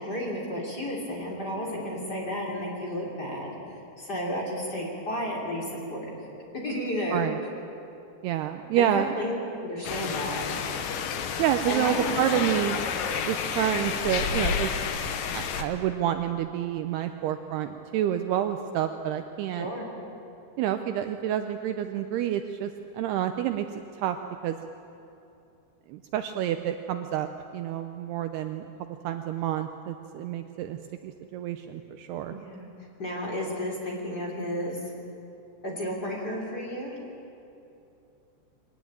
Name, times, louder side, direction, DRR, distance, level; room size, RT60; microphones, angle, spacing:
voice 1, 0.0-6.1 6.6-7.2 8.8-9.3 9.6-10.6 11.7-12.4 19.6-19.9 32.3-32.7 33.0-34.8 35.6-36.9, left 1 dB, 25° left, -2 dB, 3.2 m, -32 dB
voice 2, 8.2-9.1 11.4-12.8 13.2-14.7 15.3-19.7 20.6-23.7 24.0-24.2 24.4-24.6 25.9-27.3 27.5-28.7 29.0-30.8 31.0-32.3, right 11 dB, 80° right, 7 dB, 2.5 m, -28 dB
sound 1, 9.8-15.6, left 7 dB, 65° left, 2.2 m, -30 dB
23.0 x 19.0 x 8.7 m, 2.8 s
omnidirectional pair, 5.1 m